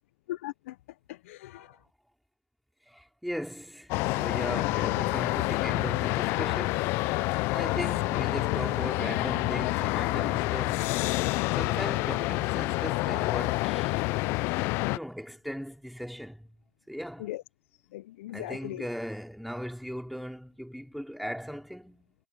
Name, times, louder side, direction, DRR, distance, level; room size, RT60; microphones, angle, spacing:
voice 1, 0.3-0.8 1.1-1.8 7.6-7.8 17.2-17.4 17.9-18.9, left 16 dB, 40° left, 0.7 m, -39 dB
voice 2, 2.9-10.9 11.6-14.1 14.9-16.5 16.9-17.3 18.3-22.1, equal, ahead, 3.4 m, -38 dB
sound 1, 3.9-15.0, left 23 dB, 20° left, 0.3 m, -28 dB
hypercardioid pair, 155°, 11 cm